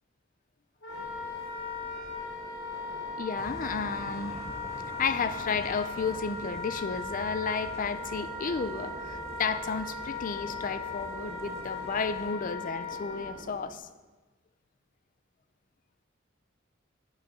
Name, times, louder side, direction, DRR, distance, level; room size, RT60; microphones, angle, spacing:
Wind instrument woodwind instrument, 0.8-13.3, left 3 dB, 70° left, 2.8 m, -38 dB
sound 1, 0.9-13.8, right 1 dB, 55° right, 2.0 m, -50 dB
voice 1, 3.2-4.4 5.0-13.9, left 5 dB, 45° left, 12 dB, 0.5 m, -32 dB
sound 2, 3.4-12.3, right 1 dB, 15° right, 0.8 m, -47 dB
9.4 x 6.6 x 6.1 m, 1.2 s
head